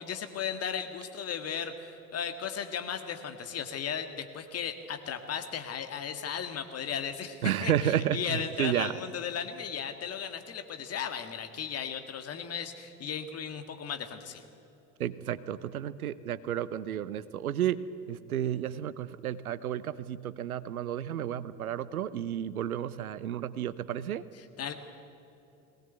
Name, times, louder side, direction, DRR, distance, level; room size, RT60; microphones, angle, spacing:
voice 1, 0.0-14.4 24.6-24.7, left 7 dB, 35° left, 7 dB, 2.0 m, -36 dB
voice 2, 7.4-8.9 15.0-24.2, right 10 dB, 75° right, 16 dB, 0.8 m, -32 dB
21.0 x 18.0 x 8.1 m, 2.9 s
figure-of-eight pair, 70°, 43 cm